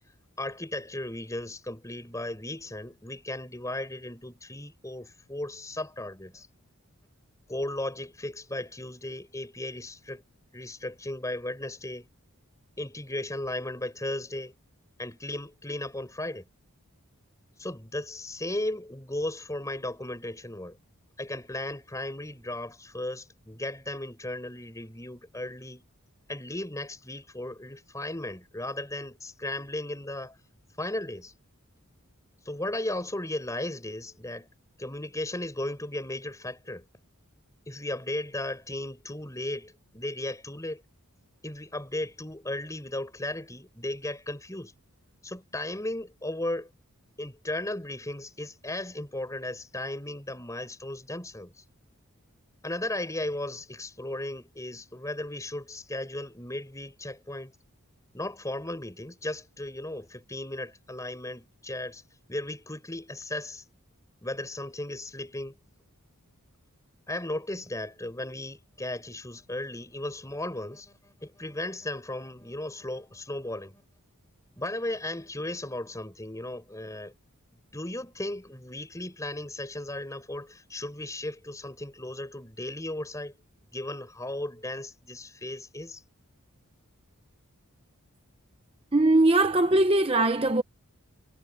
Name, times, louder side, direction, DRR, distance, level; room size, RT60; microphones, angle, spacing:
voice 1, 0.4-6.5 7.5-10.2 10.5-12.1 12.8-14.5 15.0-16.5 17.6-20.8 21.2-25.8 26.3-30.4 30.8-31.3 32.4-34.5 34.8-36.8 37.7-40.8 41.4-44.7 45.2-46.7 47.2-51.6 52.6-57.5 58.1-62.0 62.3-63.6 64.2-65.6 67.1-73.8 74.6-77.1 77.7-83.3 83.7-86.0, left 1 dB, 15° left, 4.8 m, -36 dB
voice 2, 88.9-90.6, right 2 dB, 25° right, 0.8 m, -21 dB
head